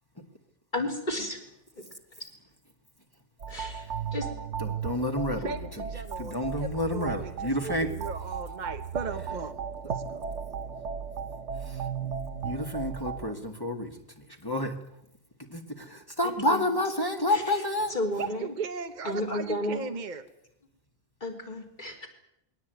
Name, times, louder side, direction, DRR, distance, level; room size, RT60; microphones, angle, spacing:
voice 1, 0.7-1.4 1.8-1.9 3.5-4.3 16.2-16.6 17.3-17.4 17.9-18.5 19.0-19.8 21.2-22.1, left 1 dB, 40° left, 2 dB, 4.0 m, -32 dB
sound 1, 3.4-13.3, right 7 dB, 75° right, 1.3 m, -36 dB
voice 2, 4.6-5.8 6.2-7.9 11.6-12.1 12.4-14.8 15.5-17.9, left 1 dB, 20° left, 2 dB, 2.0 m, -30 dB
voice 3, 5.4-7.3 7.6-9.5 9.8-10.2 18.2-20.3, right 4 dB, 40° right, 6 dB, 1.1 m, -37 dB
22.0 x 17.5 x 9.2 m, 0.81 s
omnidirectional pair, 1.2 m